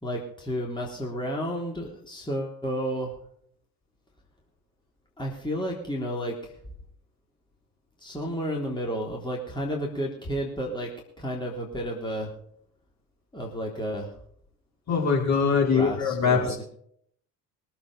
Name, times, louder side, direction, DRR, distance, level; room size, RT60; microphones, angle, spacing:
voice 1, 0.0-3.1 5.2-6.5 8.0-10.9 11.2-12.3 13.3-14.1 15.6-16.6, equal, 10° left, -1 dB, 3.6 m, -31 dB
voice 2, 14.9-16.4, left 5 dB, 35° left, -1 dB, 5.2 m, -22 dB
23.0 x 8.0 x 5.0 m, 0.66 s
figure-of-eight pair, 55°, 46 cm